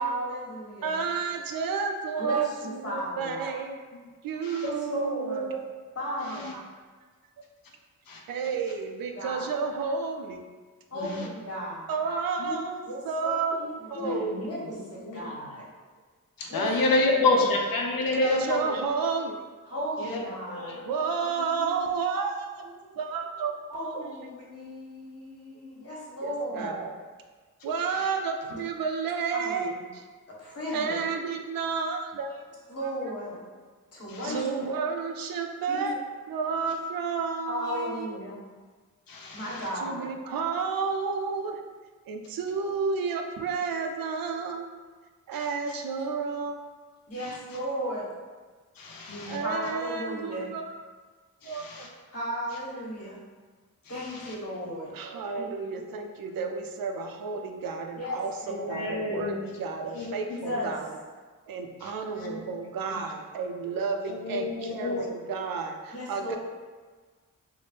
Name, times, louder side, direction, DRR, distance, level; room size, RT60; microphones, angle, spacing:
voice 1, 0.0-1.0 2.2-3.4 4.6-5.5 5.9-6.5 9.1-9.4 10.9-12.0 12.9-15.7 16.5-17.4 19.7-20.8 22.7-23.0 23.7-26.7 28.5-28.6 29.3-29.7 30.3-31.0 32.7-33.4 33.9-34.5 35.7-35.9 37.5-38.4 39.3-40.0 47.1-48.1 49.4-50.5 52.1-53.2 53.9-54.9 55.4-55.6 58.0-59.1 60.3-60.7 65.9-66.4, equal, 45° left, -6 dB, 1.3 m, -35 dB
voice 2, 0.8-3.8 4.2-5.6 6.5-6.6 8.3-10.4 11.9-13.6 13.9-14.7 18.1-19.4 20.8-24.0 26.2-27.0 27.6-30.0 30.7-32.5 34.2-35.9 36.3-38.1 39.8-41.6 42.1-44.6 45.3-46.6 49.3-50.7 51.4-51.9 54.9-61.0 61.5-66.4, right 5 dB, 85° right, 4 dB, 0.5 m, -31 dB
voice 3, 6.2-6.5 8.1-8.2 10.9-11.3 12.4-12.5 13.6-14.7 15.0-15.4 16.4-18.7 20.0-21.7 26.5-26.8 27.9-28.1 34.1-34.4 39.1-39.7 45.3-45.5 47.1-47.4 48.8-49.4 51.4-51.9 53.8-54.3 58.5-59.5 59.9-60.6 61.8-62.4 62.9-63.0 64.1-65.1, left 2 dB, 85° left, 0 dB, 0.6 m, -30 dB
4.2 x 2.1 x 3.2 m, 1.4 s
cardioid pair, 75°, 34 cm